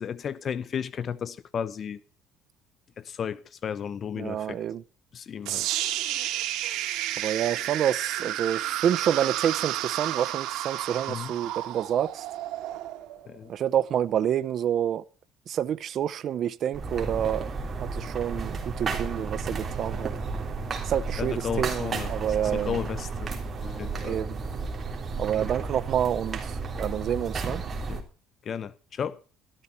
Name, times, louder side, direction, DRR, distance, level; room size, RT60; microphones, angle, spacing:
voice 1, 0.0-2.0 3.0-4.6 5.1-5.7 11.1-11.3 13.3-13.5 20.6-20.8 21.2-23.3 23.8-24.2 27.9-28.0 28.4-29.2, left 7 dB, 40° left, 0.7 m, -34 dB
voice 2, 4.2-4.8 7.2-12.2 13.5-15.0 15.5-17.5 17.9-20.1 20.8-22.8 24.0-24.3 25.2-27.6, right 10 dB, 50° right, 0.6 m, -28 dB
sound 1, 5.4-13.5, right 14 dB, 70° right, 2.1 m, -31 dB
sound 2, 16.7-28.0, right 4 dB, 30° right, 3.4 m, -33 dB
sound 3, 23.6-26.8, left 1 dB, 20° left, 3.7 m, -51 dB
13.0 x 13.0 x 4.3 m
cardioid pair, 130°, 0 cm